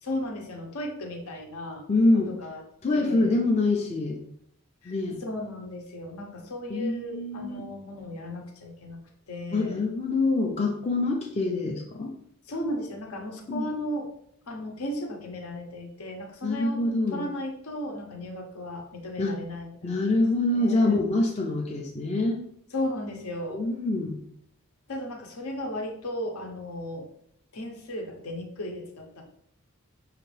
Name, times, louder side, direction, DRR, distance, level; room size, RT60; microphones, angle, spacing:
voice 1, 0.0-1.8 2.1-2.6 2.9-3.4 4.8-4.9 5.2-9.0 9.3-9.8 12.5-14.1 14.5-16.8 17.1-20.2 20.5-21.0 22.7-23.7 24.9-27.1 27.5-29.2, left 1 dB, 80° left, 2 dB, 0.8 m, -35 dB
voice 2, 1.9-2.3 2.8-4.2 4.8-5.2 6.7-7.6 9.5-12.1 13.5-13.6 16.4-17.2 19.2-19.4 19.8-22.4 23.5-24.2, left 2 dB, 30° left, 0 dB, 0.4 m, -25 dB
5.7 x 2.5 x 3.2 m, 0.71 s
head